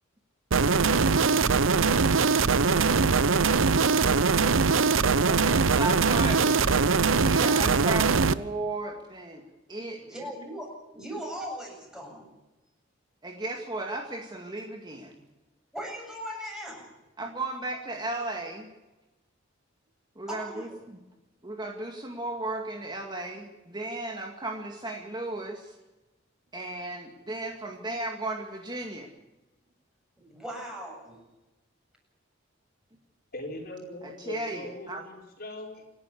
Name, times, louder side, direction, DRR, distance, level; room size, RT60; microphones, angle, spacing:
sound 1, 0.5-8.3, right 4 dB, 70° right, 0.8 m, -22 dB
voice 1, 5.2-9.4 9.7-10.3 13.2-15.2 17.2-18.7 20.2-21.0 21.4-25.7 26.5-29.1 34.0-35.0, right 2 dB, 20° right, 2 dB, 2.2 m, -35 dB
voice 2, 10.0-12.2 15.7-16.9 20.3-20.8 30.2-31.2, equal, 5° right, -1 dB, 7.9 m, -39 dB
voice 3, 33.3-35.9, left 1 dB, 50° left, 2 dB, 4.4 m, -40 dB
28.0 x 12.0 x 8.4 m, 1.1 s
head